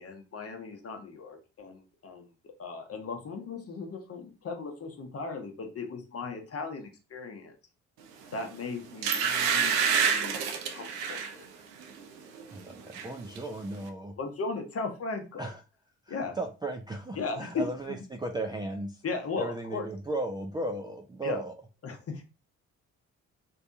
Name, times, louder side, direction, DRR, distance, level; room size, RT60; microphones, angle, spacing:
voice 1, 0.0-7.5 8.3-10.4 10.7-11.4 14.2-15.5 16.1-16.4 17.2-18.0 19.0-19.9 21.2-21.4 21.8-22.2, left 4 dB, 40° left, 4 dB, 0.8 m, -37 dB
sound 1, 8.3-8.5 9.0-11.3 11.8-12.0 12.4-13.1 13.4-13.5, right 7 dB, 70° right, 0.5 m, -27 dB
voice 2, 12.5-14.1 15.4-15.6 16.1-19.0 19.4-21.5, right 2 dB, 10° right, 1 dB, 0.3 m, -35 dB
2.6 x 2.2 x 2.5 m, 0.31 s
hypercardioid pair, 45°, 38 cm